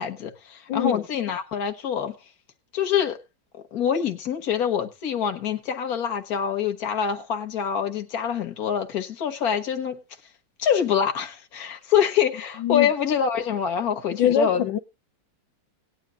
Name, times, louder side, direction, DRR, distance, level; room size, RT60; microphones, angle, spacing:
voice 1, 0.0-2.1 2.7-3.2 3.7-10.0 10.6-14.6, left 8 dB, 55° left, 1.8 m, -25 dB
voice 2, 0.7-1.0 12.6-12.9 14.2-14.8, left 8 dB, 90° left, 1.5 m, -22 dB
18.5 x 10.0 x 2.4 m
omnidirectional pair, 2.0 m